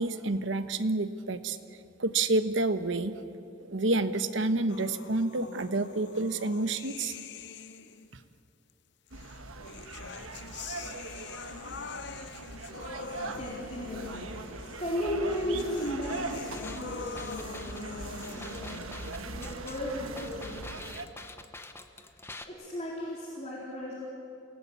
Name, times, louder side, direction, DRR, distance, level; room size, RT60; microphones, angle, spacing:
voice 1, 0.0-1.6 2.0-3.1 3.6-7.2, right 2 dB, 60° right, 10 dB, 1.1 m, -29 dB
sound 1, 4.7-8.1 9.1-20.7, left 5 dB, 55° left, 0.8 m, -45 dB
sound 2, 9.1-21.1, right 3 dB, 85° right, 1.4 m, -41 dB
voice 2, 13.2-14.3 14.6-20.9 22.5-23.9, equal, 30° left, -6 dB, 3.9 m, -36 dB
sound 3, 16.5-22.5, left 2 dB, 10° left, 1.0 m, -46 dB
28.0 x 18.5 x 8.6 m, 2.8 s
head